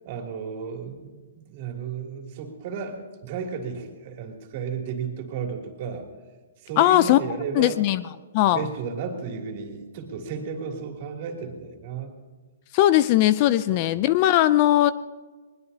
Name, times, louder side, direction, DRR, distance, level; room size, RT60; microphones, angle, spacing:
voice 1, 0.0-1.2 1.4-6.1 6.6-7.8 8.5-12.2 13.7-14.0, right 5 dB, 40° right, 2 dB, 2.9 m, -33 dB
voice 2, 6.8-7.2 7.6-8.0 8.3-8.6 12.7-14.9, left 14 dB, 35° left, 16 dB, 0.4 m, -19 dB
21.5 x 20.0 x 2.8 m, 1.4 s
hypercardioid pair, 160°, 0 cm